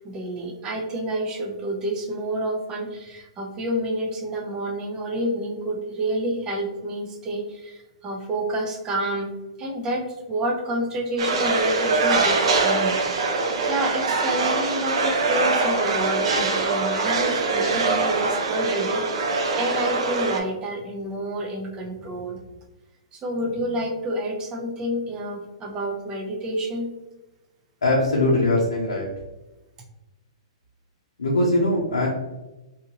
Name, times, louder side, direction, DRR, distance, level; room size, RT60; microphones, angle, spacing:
voice 1, 0.0-13.0 13.6-22.4 23.1-26.9, right 1 dB, 25° right, 2 dB, 0.6 m, -29 dB
sound 1, 11.2-20.4, right 3 dB, 65° right, 0.6 m, -23 dB
voice 2, 27.8-29.1 31.2-32.1, left 1 dB, 90° left, -3 dB, 0.6 m, -21 dB
2.7 x 2.5 x 2.8 m, 1.1 s
hypercardioid pair, 130°, 3 cm